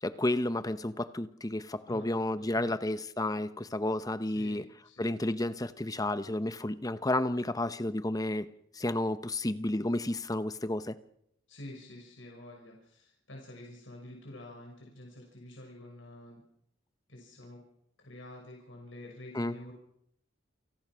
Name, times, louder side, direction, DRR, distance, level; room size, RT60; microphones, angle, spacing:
voice 1, 0.0-4.6 5.0-8.5 8.7-11.0 19.3-19.5, left 1 dB, 20° left, 12 dB, 0.8 m, -31 dB
voice 2, 2.4-2.7 4.2-5.1 11.5-16.4 17.1-17.6 18.0-19.7, left 1 dB, 70° left, 0 dB, 6.1 m, -48 dB
29.0 x 17.5 x 6.2 m, 0.75 s
head